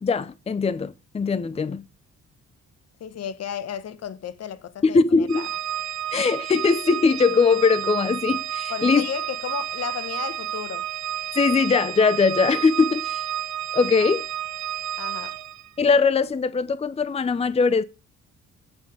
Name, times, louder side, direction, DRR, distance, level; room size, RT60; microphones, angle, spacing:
voice 1, 0.0-1.8 4.8-5.5 6.1-9.1 11.4-13.2 13.7-14.3 15.8-17.8, left 4 dB, 20° left, 0.6 m, -21 dB
voice 2, 3.0-5.5 8.7-10.9 14.0-14.1 15.0-15.4, left 9 dB, 55° left, 1.0 m, -34 dB
Organ, 5.3-15.7, right 11 dB, 70° right, 0.8 m, -31 dB
8.3 x 6.0 x 4.9 m
cardioid pair, 90°, 30 cm